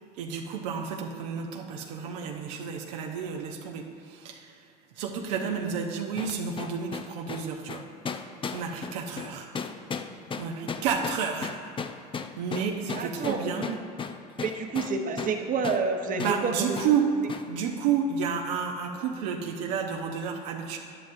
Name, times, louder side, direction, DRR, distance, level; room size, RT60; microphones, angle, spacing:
voice 1, 0.2-4.5 5.0-7.8 8.5-9.5 10.4-11.5 12.4-13.7 16.1-17.1 17.4-20.8, right 7 dB, 80° right, 1 dB, 0.8 m, -31 dB
sound 1, 6.2-15.4 15.6-15.9 16.2-16.4 16.8-17.0 17.3-17.5, left 5 dB, 25° left, 0.5 m, -35 dB
voice 2, 12.9-13.4 13.7-13.8 14.4-16.8, right 4 dB, 40° right, 4 dB, 1.0 m, -29 dB
11.5 x 9.9 x 2.6 m, 2.2 s
hypercardioid pair, 80°, 21 cm